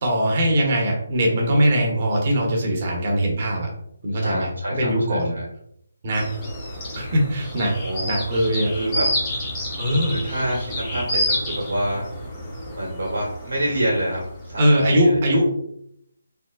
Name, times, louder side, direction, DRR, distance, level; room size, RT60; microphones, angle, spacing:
voice 1, 0.0-3.7 4.0-5.3 6.0-6.3 6.9-7.7 8.0-8.7 9.8-10.2 14.6-15.5, equal, 40° right, -1 dB, 0.9 m, -21 dB
voice 2, 4.2-5.5 7.6-8.1 8.7-9.1 10.0-12.1 12.8-15.2, right 1 dB, 70° right, -4 dB, 1.2 m, -27 dB
sound 1, 6.1-14.6, equal, 25° left, 0.9 m, -29 dB
3.5 x 2.1 x 2.3 m, 0.74 s
figure-of-eight pair, 150°, 0 cm